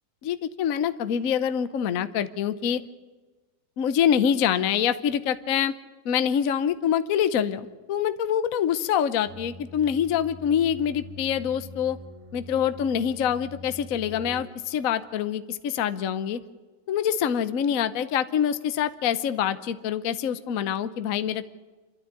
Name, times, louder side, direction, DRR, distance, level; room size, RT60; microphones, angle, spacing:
voice 1, 0.2-2.8 3.8-5.8 6.0-12.0 12.3-16.4 16.9-21.5, left 8 dB, 55° left, 12 dB, 1.1 m, -25 dB
sound 1, 9.3-14.4, left 1 dB, 25° right, 0.7 m, -44 dB
27.0 x 12.5 x 9.5 m, 1.3 s
omnidirectional pair, 2.0 m